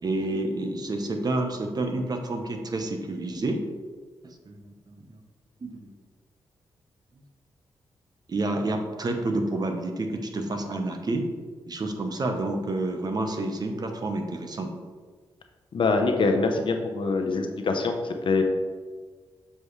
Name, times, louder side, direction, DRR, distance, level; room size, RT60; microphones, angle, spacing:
voice 1, 0.0-3.6 4.5-5.0 5.6-5.9 8.3-11.2 11.7-14.7, right 2 dB, 45° right, 4 dB, 0.9 m, -29 dB
voice 2, 15.7-18.4, left 3 dB, 60° left, 5 dB, 0.8 m, -24 dB
7.3 x 5.2 x 3.2 m, 1.5 s
cardioid pair, 80°, 9 cm